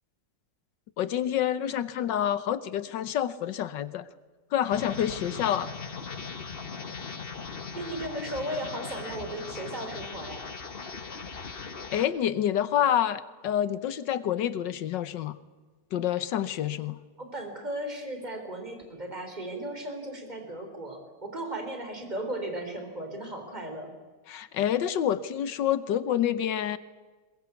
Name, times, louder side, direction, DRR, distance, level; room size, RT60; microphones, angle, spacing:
voice 1, 1.0-4.1 4.5-5.7 11.0-15.4 15.9-17.0 24.3-26.8, left 10 dB, 75° left, 15 dB, 1.6 m, -28 dB
sound 1, 4.7-12.1, left 5 dB, 35° left, 1.2 m, -39 dB
voice 2, 7.7-10.4 17.2-23.9, right 1 dB, 20° right, 5 dB, 4.0 m, -36 dB
22.0 x 21.5 x 8.3 m, 1.3 s
omnidirectional pair, 2.0 m